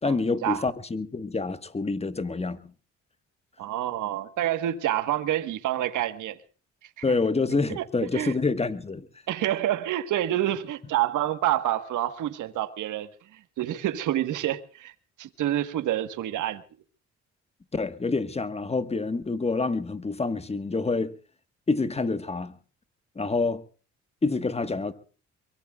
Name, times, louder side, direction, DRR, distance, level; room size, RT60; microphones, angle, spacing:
voice 1, 0.0-2.6 7.0-9.1 17.7-21.2 21.7-22.6 23.1-23.6 24.2-24.9, left 3 dB, 20° left, 1.4 m, -27 dB
voice 2, 3.6-6.4 7.7-7.8 8.1-8.3 9.3-14.9 15.2-16.6, right 12 dB, 80° right, 1.4 m, -28 dB
23.0 x 22.5 x 2.4 m
cardioid pair, 90°, 30 cm